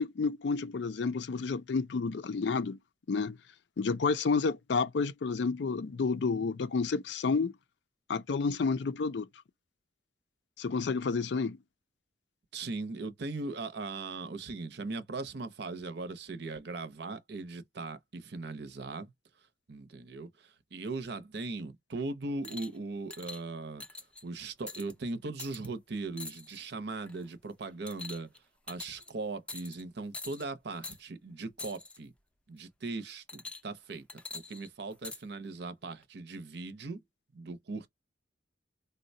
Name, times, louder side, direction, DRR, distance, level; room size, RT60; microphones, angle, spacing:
voice 1, 0.0-2.8 3.1-3.4 3.8-7.5 8.1-9.3 10.6-11.6, left 4 dB, 65° left, 0.4 m, -30 dB
voice 2, 12.5-19.1 19.7-23.8 24.2-28.3 28.7-32.1 32.5-34.0 34.3-37.0 37.3-37.9, right 3 dB, 65° right, 0.7 m, -39 dB
sound 1, 22.4-22.8 23.1-23.4 23.8-24.2 24.7-24.9 25.4-25.7 26.2-26.6 27.1-27.3 27.9-28.4 28.7-29.1 29.5-29.8 30.1-30.5 30.8-31.0 31.6-32.0 33.3-33.8 34.1-35.2 36.0-36.1, left 3 dB, 5° left, 0.5 m, -44 dB
3.8 x 2.1 x 2.6 m
head